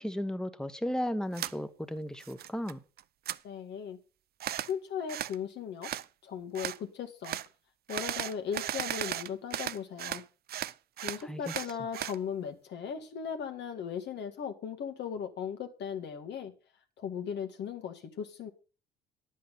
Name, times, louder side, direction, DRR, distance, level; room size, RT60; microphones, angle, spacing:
voice 1, 0.0-2.8 11.2-11.5, equal, 5° left, 11 dB, 1.4 m, -35 dB
sound 1, 1.3-1.5 2.0-2.7 3.0-3.4 4.4-4.7 5.1-5.4 5.8-6.1 6.5-6.8 7.2-7.5 7.9-10.2 10.5-12.2, right 12 dB, 50° right, 0.5 m, -36 dB
voice 2, 3.4-4.0 4.7-5.9 6.2-7.4 7.9-10.2 11.0-16.5 17.0-18.5, left 7 dB, 60° left, 7 dB, 1.9 m, -37 dB
10.0 x 8.5 x 5.3 m, 0.35 s
hypercardioid pair, 65°, 20 cm